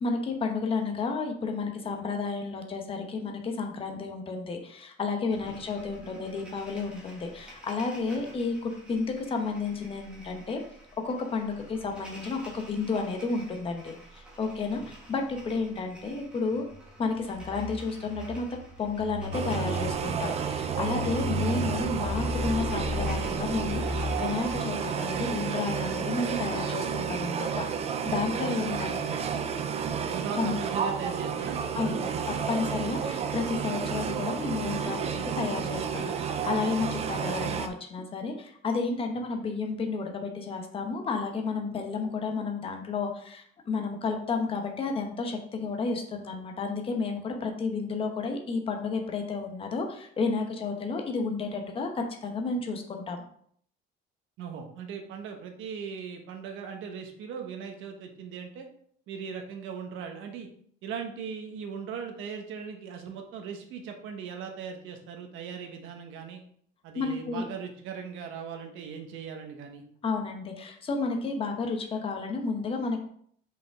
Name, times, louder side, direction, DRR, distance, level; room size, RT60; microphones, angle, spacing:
voice 1, 0.0-10.6 11.0-16.6 17.0-18.5 18.8-29.1 30.4-30.6 31.7-32.1 32.5-53.2 66.9-67.4 70.0-73.0, left 4 dB, 25° left, 3 dB, 0.9 m, -31 dB
sound 1, 5.3-24.5, left 1 dB, 5° right, 1.5 m, -38 dB
sound 2, 19.3-37.7, right 7 dB, 30° right, 0.5 m, -31 dB
voice 2, 28.4-29.3 30.1-32.0 54.4-58.7 59.1-60.5 60.8-66.4 66.8-69.8, right 6 dB, 70° right, 4 dB, 1.3 m, -39 dB
5.9 x 5.1 x 3.6 m, 0.62 s
cardioid pair, 165°, 21 cm